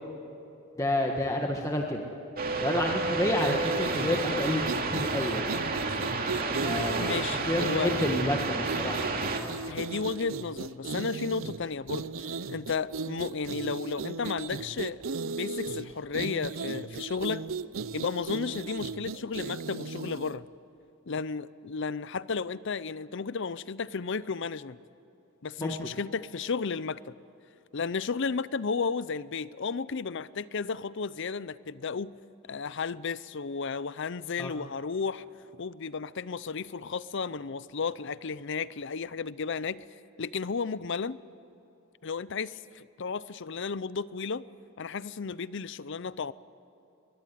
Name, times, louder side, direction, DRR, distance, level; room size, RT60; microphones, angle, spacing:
voice 1, 0.8-2.0 2.6-4.6 4.9-5.5 6.6-9.0 25.6-25.7 34.4-34.5, left 1 dB, 15° left, 1 dB, 1.6 m, -29 dB
sound 1, 2.4-9.4, right 3 dB, 50° right, 2.5 m, -30 dB
sound 2, 3.3-20.4, right 4 dB, 80° right, 0.7 m, -37 dB
voice 2, 7.0-8.0 9.7-15.0 15.2-17.4 17.9-20.5 21.1-24.8 25.4-27.2 27.7-32.1 32.5-35.2 35.6-39.8 40.2-41.2 42.0-44.4 44.8-46.3, left 5 dB, 65° left, 18 dB, 0.6 m, -33 dB
22.5 x 22.0 x 9.3 m, 2.9 s
head